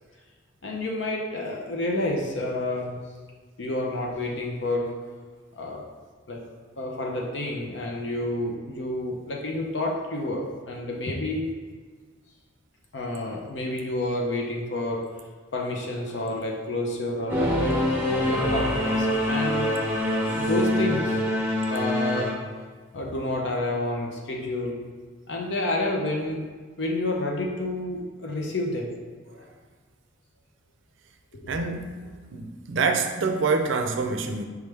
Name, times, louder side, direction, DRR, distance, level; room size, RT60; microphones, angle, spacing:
voice 1, 0.6-3.0 3.6-4.9 5.6-5.9 6.3-6.4 6.8-11.5 12.9-15.0 15.5-17.7 18.0-19.8 20.2-22.3 22.9-24.8 25.3-26.4 26.8-28.9 29.3-29.4 31.3-31.5, left 2 dB, 65° left, -1 dB, 0.6 m, -29 dB
Singing / Musical instrument, 17.3-22.3, left 1 dB, 10° right, 0.7 m, -25 dB
voice 2, 31.5-32.0 32.3-34.5, right 4 dB, 70° right, 6 dB, 0.4 m, -26 dB
4.7 x 3.2 x 3.4 m, 1.5 s
head